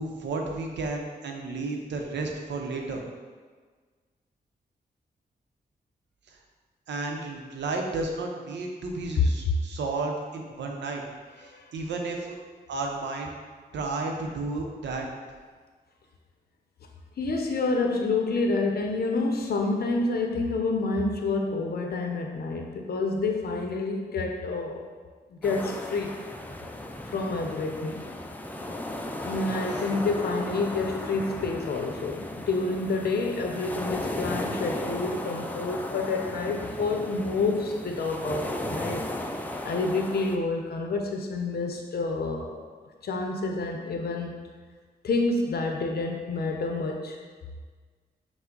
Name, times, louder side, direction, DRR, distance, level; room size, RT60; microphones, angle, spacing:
voice 1, 0.0-3.0 6.3-6.4 6.9-11.0 11.4-12.4 12.7-13.3 13.7-15.1, right 3 dB, 90° right, 1 dB, 0.6 m, -32 dB
voice 2, 17.2-24.8 25.3-26.1 27.1-28.0 29.2-39.1 39.4-42.6 43.0-44.4 45.0-47.2, left 3 dB, 60° left, 2 dB, 0.6 m, -28 dB
sound 1, 25.4-40.4, left 1 dB, 10° left, 0.4 m, -35 dB
5.7 x 2.1 x 3.8 m, 1.5 s
cardioid pair, 65°, 18 cm